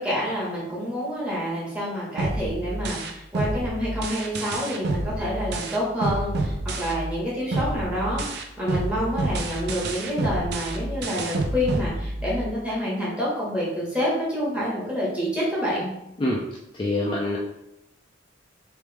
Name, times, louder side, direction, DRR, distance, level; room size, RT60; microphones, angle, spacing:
voice 1, 0.0-15.9, equal, 5° right, -7 dB, 1.4 m, -28 dB
sound 1, 2.2-7.2 7.5-12.5, right 2 dB, 60° right, 0.5 m, -29 dB
voice 2, 16.8-17.4, left 1 dB, 25° left, -3 dB, 0.4 m, -24 dB
3.4 x 3.1 x 3.4 m, 0.85 s
head